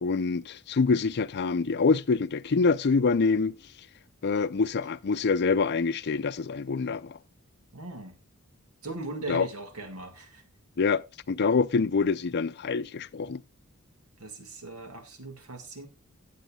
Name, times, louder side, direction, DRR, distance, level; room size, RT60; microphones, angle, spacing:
voice 1, 0.0-3.6 4.2-7.2 9.3-9.5 10.8-13.4, left 4 dB, 50° left, 0.5 m, -25 dB
voice 2, 7.7-8.2 8.8-10.4 14.2-15.9, right 2 dB, 85° right, 1.9 m, -39 dB
17.0 x 8.2 x 2.3 m
head